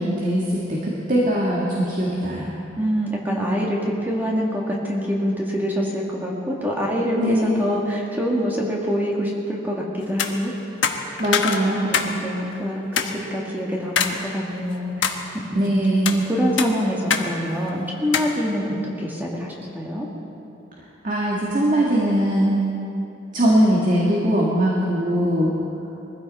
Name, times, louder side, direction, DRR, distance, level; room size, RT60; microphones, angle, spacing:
voice 1, 0.0-2.5 7.2-7.5 11.2-12.0 15.6-16.2 21.0-22.6 23.3-25.5, equal, 45° right, -4 dB, 2.1 m, -21 dB
voice 2, 2.8-10.5 11.8-13.0 13.3-15.1 15.5-15.7 16.3-20.1, equal, 10° right, -3 dB, 2.0 m, -25 dB
sound 1, 10.1-10.3 10.8-12.1 12.5-12.6 13.0-13.1 14.0-14.2 14.6-15.2 15.8-16.2 16.6-17.3 17.5-17.6 18.1-18.3, left 7 dB, 80° left, 1.2 m, -23 dB
22.0 x 15.0 x 4.3 m, 2.9 s
head